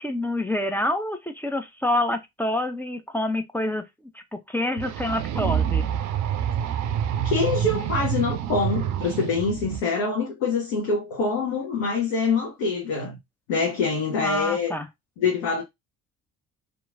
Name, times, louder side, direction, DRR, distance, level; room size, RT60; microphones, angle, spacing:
voice 1, 0.0-3.8 4.1-5.9 14.2-14.9, left 1 dB, 5° left, 0.4 m, -27 dB
sound 1, 4.8-9.8, right 9 dB, 50° right, 0.5 m, -27 dB
voice 2, 7.2-13.2 13.5-14.7 15.2-15.6, left 4 dB, 65° left, 0.9 m, -25 dB
2.9 x 2.3 x 2.4 m
figure-of-eight pair, 50°, 39 cm